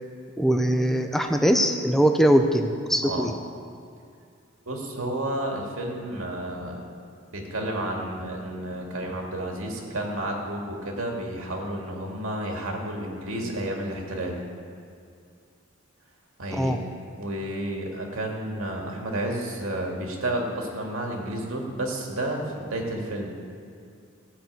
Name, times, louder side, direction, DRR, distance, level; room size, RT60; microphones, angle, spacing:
voice 1, 0.4-3.3 16.5-16.8, equal, ahead, 5 dB, 0.7 m, -21 dB
voice 2, 3.0-3.3 4.7-6.9 7.3-14.4 16.4-16.8 17.2-23.3, right 1 dB, 85° right, 0 dB, 2.2 m, -31 dB
15.5 x 6.2 x 8.3 m, 2.3 s
head